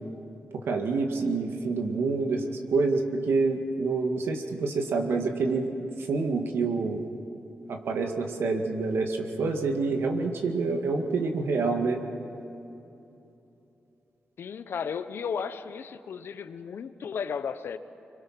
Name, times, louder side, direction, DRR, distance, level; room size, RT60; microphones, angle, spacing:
voice 1, 0.7-5.7 6.1-7.0 7.7-12.0, right 4 dB, 85° right, 2.0 m, -27 dB
voice 2, 14.4-17.8, left 6 dB, 70° left, 0.9 m, -34 dB
26.5 x 24.0 x 6.0 m
cardioid pair, 95°, 4 cm